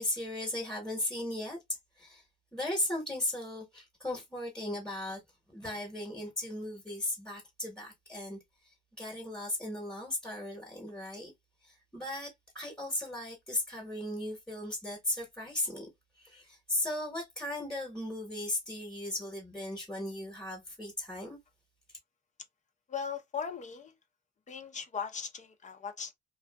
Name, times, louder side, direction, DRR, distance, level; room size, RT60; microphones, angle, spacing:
voice 1, 0.0-1.6 2.0-2.2 2.5-5.2 5.5-8.4 8.6-11.3 11.6-15.9 16.2-21.4, left 1 dB, 5° left, 1.1 m, -36 dB
voice 2, 22.9-23.9 24.5-26.1, left 6 dB, 40° left, 0.6 m, -38 dB
2.6 x 2.4 x 2.2 m
cardioid pair, 90°, 20 cm